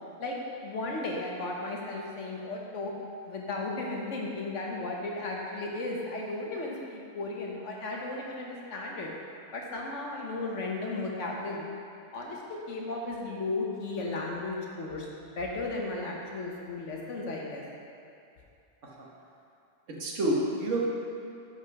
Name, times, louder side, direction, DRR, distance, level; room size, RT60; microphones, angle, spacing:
voice 1, 0.6-2.9 3.3-9.1 9.5-11.7 12.1-15.1 15.4-17.6, left 2 dB, 75° left, -2 dB, 1.4 m, -35 dB
voice 2, 19.9-20.9, right 1 dB, 80° right, -4 dB, 1.5 m, -29 dB
6.5 x 5.9 x 5.9 m, 2.6 s
omnidirectional pair, 1.3 m